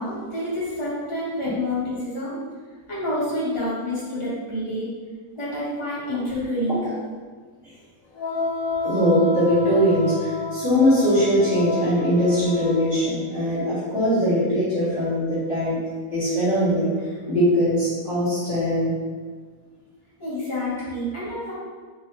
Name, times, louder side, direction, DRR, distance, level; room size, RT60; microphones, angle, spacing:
voice 1, 0.0-2.4 2.9-4.9 5.4-6.9 20.2-21.5, left 1 dB, 20° left, -10 dB, 1.4 m, -28 dB
Wind instrument woodwind instrument, 8.2-12.9, left 3 dB, 70° left, 0.8 m, -29 dB
voice 2, 8.8-15.8 16.1-16.9 17.3-18.9, equal, 40° left, -12 dB, 1.6 m, -21 dB
4.6 x 2.7 x 3.2 m, 1.5 s
omnidirectional pair, 1.8 m